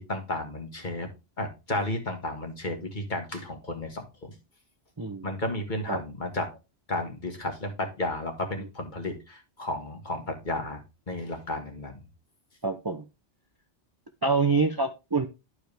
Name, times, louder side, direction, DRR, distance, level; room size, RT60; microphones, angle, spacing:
voice 1, 0.1-1.1 1.4-4.3 5.2-6.5 6.9-10.8 11.1-12.1, left 1 dB, 40° left, 4 dB, 1.9 m, -33 dB
voice 2, 5.0-5.3 5.9-6.0 12.6-13.0 14.2-15.3, right 4 dB, 25° right, 5 dB, 0.6 m, -26 dB
11.5 x 4.8 x 3.4 m, 0.27 s
omnidirectional pair, 1.2 m